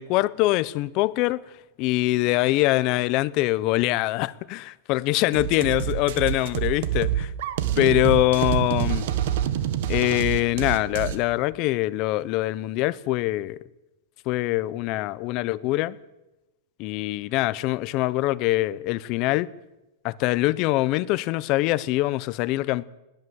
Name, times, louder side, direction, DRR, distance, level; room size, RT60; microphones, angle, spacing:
voice 1, 0.0-1.4 1.8-7.3 7.8-9.1 9.9-13.6 14.3-16.0 16.8-19.5 20.0-22.8, left 18 dB, 35° left, 0.7 m, -23 dB
sound 1, 5.3-11.2, right 10 dB, 60° right, 1.8 m, -26 dB
20.5 x 15.5 x 8.0 m
supercardioid pair, 160°, 0 cm